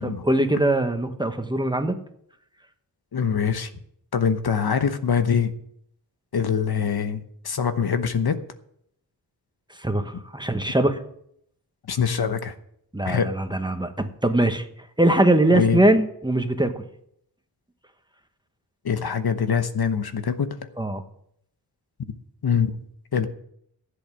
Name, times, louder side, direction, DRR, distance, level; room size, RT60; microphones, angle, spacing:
voice 1, 0.0-1.9 9.8-11.0 12.9-14.6 15.0-16.8 20.8-21.0, right 1 dB, 10° right, 7 dB, 1.2 m, -22 dB
voice 2, 3.1-3.7 4.1-5.5 6.3-8.4 11.9-12.5 13.0-13.3 15.5-15.8 18.8-20.6 22.4-22.8 23.1-23.3, left 6 dB, 70° left, 10 dB, 1.0 m, -23 dB
14.5 x 8.1 x 6.2 m, 0.71 s
wide cardioid pair, 90°, 40 cm